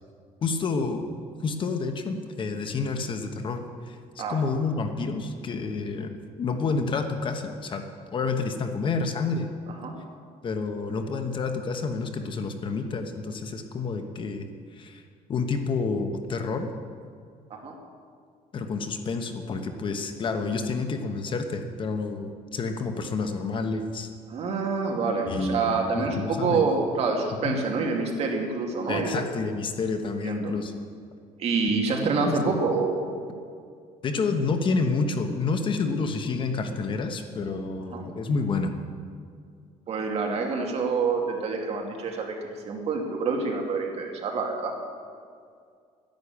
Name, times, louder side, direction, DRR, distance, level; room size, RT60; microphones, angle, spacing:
voice 1, 0.4-1.1 1.4-6.1 6.4-7.8 8.1-9.5 10.4-14.4 14.7-15.0 15.3-16.7 18.5-24.1 25.3-26.6 27.4-27.6 28.9-30.7 31.7-31.8 32.2-32.4 34.0-38.8, left 4 dB, 40° left, 6 dB, 1.2 m, -29 dB
voice 2, 24.3-29.2 30.2-30.5 31.4-33.0 37.9-38.1 39.9-44.8, right 4 dB, 50° right, 1 dB, 2.4 m, -27 dB
12.0 x 10.5 x 8.5 m, 2.2 s
cardioid pair, 140°, 13 cm